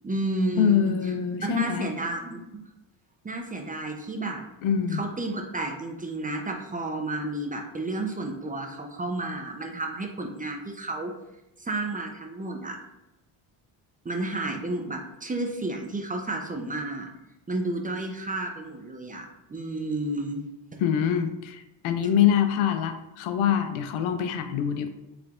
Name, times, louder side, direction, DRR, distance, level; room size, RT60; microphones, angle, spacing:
voice 1, 0.0-0.9 1.5-2.4 3.2-4.4 4.9-11.1 11.6-12.8 14.0-17.1 17.5-20.4, right 2 dB, 15° right, 3 dB, 0.5 m, -31 dB
voice 2, 0.6-1.9 4.6-5.0 20.8-24.9, left 8 dB, 75° left, 8 dB, 0.6 m, -24 dB
4.7 x 3.3 x 2.4 m, 0.94 s
supercardioid pair, 80°, 49 cm